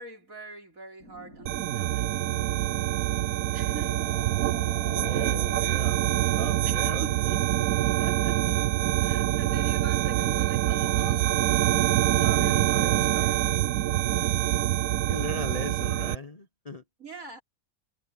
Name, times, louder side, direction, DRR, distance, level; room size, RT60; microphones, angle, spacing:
voice 1, 0.0-2.1 3.5-4.2 5.1-5.5 6.6-7.2 8.0-13.6 14.2-14.4 17.0-17.4, right 4 dB, 60° right, 4.6 m, -44 dB
sound 1, 1.0-12.5, left 3 dB, 80° left, 8.5 m, -49 dB
sound 2, 1.5-16.1, right 14 dB, 75° right, 1.1 m, -25 dB
voice 2, 4.9-6.0 6.4-7.4 12.4-13.1 15.1-16.8, left 2 dB, 25° left, 1.1 m, -38 dB
omnidirectional pair, 1.6 m